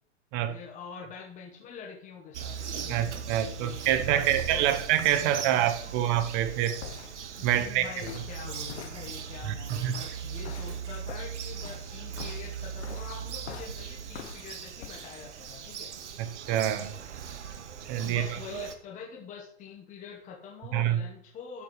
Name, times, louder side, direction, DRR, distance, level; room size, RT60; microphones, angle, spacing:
voice 1, 0.5-2.6 2.8-3.1 3.4-4.7 5.2-5.3 5.8-5.9 7.4-15.9 18.0-21.6, left 6 dB, 20° left, 1.1 m, -45 dB
Bird vocalization bird call bird song, 2.3-18.7, right 8 dB, 80° right, 1.1 m, -39 dB
voice 2, 2.9-6.8 7.4-7.9 9.4-10.0 16.2-17.0 17.9-18.2 20.7-21.0, right 11 dB, 30° right, 0.7 m, -26 dB
sound 1, 6.8-15.0, left 8 dB, 75° left, 0.9 m, -46 dB
12.5 x 4.7 x 3.1 m
hypercardioid pair, 130°, 35 cm